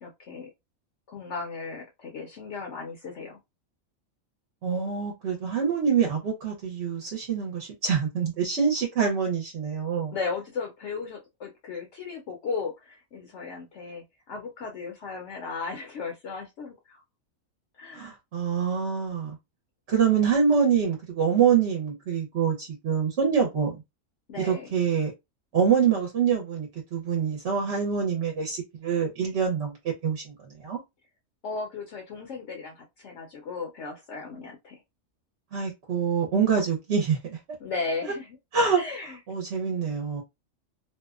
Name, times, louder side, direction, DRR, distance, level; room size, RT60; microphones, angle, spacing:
voice 1, 0.0-0.5 1.1-3.4 10.1-17.0 17.8-18.1 24.3-24.7 31.4-34.8 37.6-38.4 38.8-39.2, left 4 dB, 65° left, 0.8 m, -36 dB
voice 2, 4.6-10.2 17.9-19.4 19.9-23.7 24.4-25.1 25.5-29.8 30.0-30.8 35.5-37.4 38.5-38.8 39.3-40.2, right 6 dB, 60° right, 0.9 m, -25 dB
2.6 x 2.1 x 2.3 m
omnidirectional pair, 1.5 m